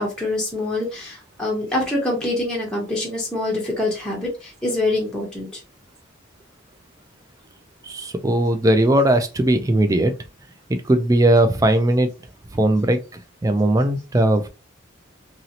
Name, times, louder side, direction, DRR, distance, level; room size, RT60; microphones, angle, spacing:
voice 1, 0.0-5.6, left 2 dB, 5° left, 0.7 m, -25 dB
voice 2, 7.8-10.1 10.7-12.1 12.5-13.0 13.4-14.5, right 1 dB, 15° right, 0.3 m, -18 dB
3.0 x 2.7 x 2.8 m
head